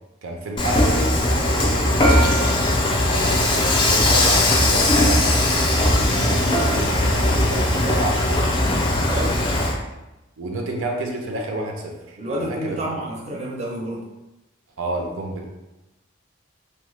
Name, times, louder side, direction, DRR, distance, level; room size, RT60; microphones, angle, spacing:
voice 1, 0.2-2.6 3.1-8.6 9.4-9.8 10.4-12.8 14.8-15.4, right 1 dB, 90° right, 1 dB, 0.6 m, -30 dB
Dishes pots and pans / Frying (food), 0.6-9.8, left 1 dB, 25° left, 0.3 m, -19 dB
voice 2, 9.0-9.4 12.2-14.0, right 1 dB, 35° right, -2 dB, 0.5 m, -29 dB
3.0 x 2.1 x 3.1 m, 0.99 s
head